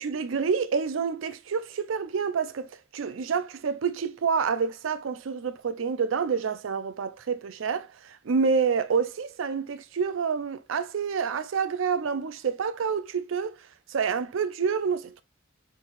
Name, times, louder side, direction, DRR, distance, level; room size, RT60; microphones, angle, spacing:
voice 1, 0.0-13.6 13.9-15.2, right 6 dB, 80° right, 0.4 m, -28 dB
3.9 x 3.9 x 2.5 m
head